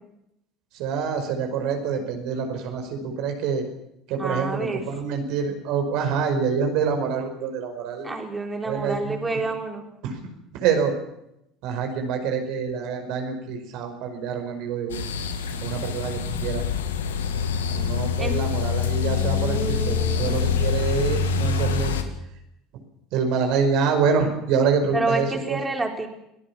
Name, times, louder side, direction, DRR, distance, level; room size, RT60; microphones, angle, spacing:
voice 1, 0.7-3.6 4.1-8.1 8.6-9.4 10.0-10.2 10.5-11.0 11.6-15.0 15.6-16.6 17.7-22.0 23.1-25.6, right 6 dB, 65° right, 4 dB, 5.3 m, -26 dB
voice 2, 4.2-4.8 8.0-9.8 18.2-18.4 19.0-20.6 24.9-26.1, right 2 dB, 20° right, 2 dB, 4.4 m, -29 dB
sound 1, 14.9-22.0, left 6 dB, 80° left, 2.1 m, -25 dB
24.0 x 18.0 x 7.2 m, 0.82 s
hypercardioid pair, 70°, 0 cm